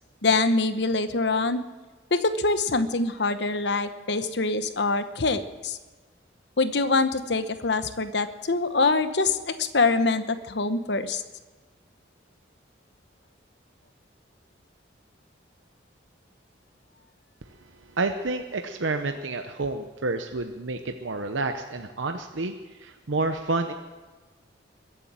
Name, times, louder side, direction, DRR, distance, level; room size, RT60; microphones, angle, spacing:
voice 1, 0.2-1.6 2.1-5.8 6.6-11.2, left 3 dB, 60° left, 10 dB, 1.0 m, -24 dB
voice 2, 18.0-22.5 22.8-23.7, right 3 dB, 80° right, 6 dB, 0.8 m, -29 dB
21.5 x 8.4 x 7.6 m, 1.3 s
head